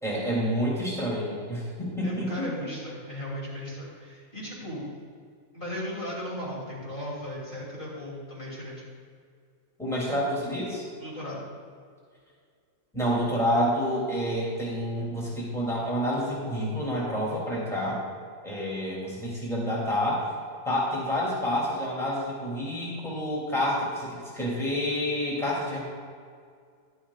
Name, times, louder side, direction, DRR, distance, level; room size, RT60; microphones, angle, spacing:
voice 1, 0.0-2.5 9.8-10.8 12.9-18.0 18.4-20.3 20.6-25.8, equal, ahead, -6 dB, 2.9 m, -28 dB
voice 2, 2.0-4.8 5.5-8.8 11.0-11.5, equal, 40° left, -7 dB, 3.2 m, -36 dB
12.5 x 12.0 x 2.5 m, 2.2 s
omnidirectional pair, 1.4 m